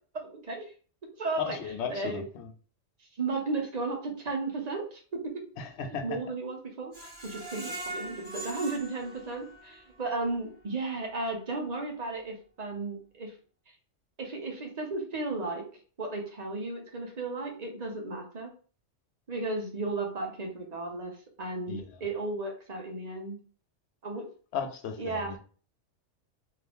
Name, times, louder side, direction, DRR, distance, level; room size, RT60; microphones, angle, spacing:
voice 1, 0.1-0.7 1.2-1.6 1.9-2.2 3.2-5.0 5.8-6.9 7.2-13.3 13.7-13.8 14.2-15.6 16.0-18.5 19.3-23.4 24.0-24.2 25.0-25.4, right 3 dB, 40° right, 1 dB, 0.8 m, -34 dB
voice 2, 1.4-2.5 5.6-6.2 21.7-21.8 24.5-25.4, left 7 dB, 65° left, 5 dB, 0.9 m, -35 dB
Screech, 6.9-9.9 10.3-10.4 10.8-10.9, right 2 dB, 10° right, 0.9 m, -41 dB
2.8 x 2.5 x 3.4 m, 0.40 s
omnidirectional pair, 1.3 m